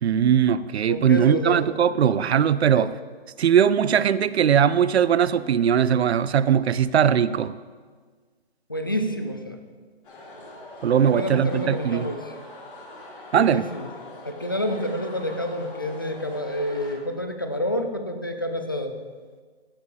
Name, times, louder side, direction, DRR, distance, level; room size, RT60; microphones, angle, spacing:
voice 1, 0.0-2.9 3.4-7.5 10.8-12.1 13.3-13.6, right 8 dB, 85° right, 0.5 m, -20 dB
voice 2, 0.9-1.6 2.7-2.9 8.7-9.6 11.0-12.3 13.4-13.9 14.2-18.9, left 1 dB, 25° left, 0.3 m, -29 dB
sound 1, 10.0-17.0, left 2 dB, 55° left, 3.1 m, -43 dB
12.5 x 7.1 x 3.3 m
hypercardioid pair, 160°, 31 cm